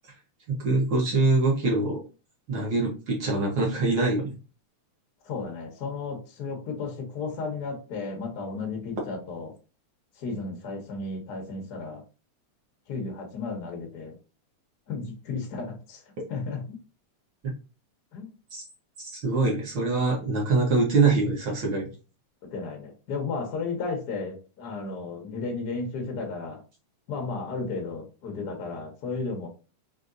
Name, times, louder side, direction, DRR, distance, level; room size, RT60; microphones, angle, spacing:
voice 1, 0.5-2.0 2.5-4.2 18.5-18.6 19.0-21.9, right 3 dB, 60° right, -2 dB, 1.2 m, -24 dB
voice 2, 5.2-9.5 10.2-12.0 12.9-14.2 14.9-16.0 16.3-16.8 18.1-18.3 22.4-26.6 27.1-29.5, left 4 dB, 85° left, 2 dB, 0.9 m, -34 dB
5.0 x 2.8 x 2.6 m, 0.32 s
omnidirectional pair, 3.5 m